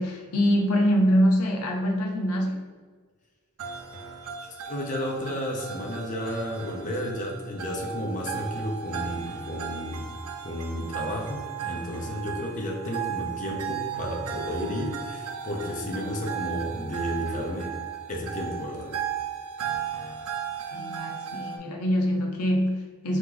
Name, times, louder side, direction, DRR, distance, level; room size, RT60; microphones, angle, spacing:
voice 1, 0.0-2.6 20.7-23.2, equal, 85° left, 2 dB, 0.7 m, -24 dB
sound 1, 3.6-21.6, right 8 dB, 75° right, 0.5 m, -36 dB
voice 2, 3.8-10.2 10.4-17.7 18.1-18.9, equal, 35° left, -1 dB, 0.8 m, -32 dB
3.7 x 3.1 x 3.8 m, 1.5 s
head